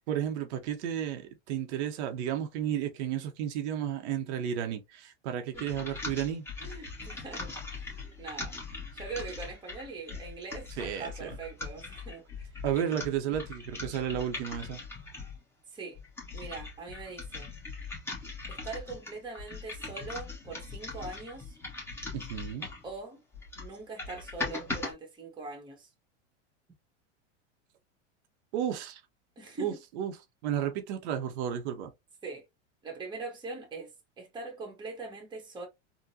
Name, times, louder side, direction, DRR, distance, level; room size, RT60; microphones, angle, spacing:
voice 1, 0.1-6.5 10.8-11.3 12.6-14.8 22.1-22.7 28.5-29.0 29.6-30.2 30.4-31.9, right 9 dB, 65° right, 0.8 m, -33 dB
sound 1, 5.5-15.4 15.9-22.9 23.3-24.9, left 3 dB, 5° left, 1.1 m, -40 dB
voice 2, 6.6-8.5 8.9-12.5 15.7-16.0 16.3-17.5 18.4-21.6 22.8-23.2 23.6-25.9 29.4-29.8 32.2-32.4 32.8-35.7, right 3 dB, 15° right, 1.0 m, -42 dB
3.7 x 2.1 x 2.6 m
supercardioid pair, 125°, 35 cm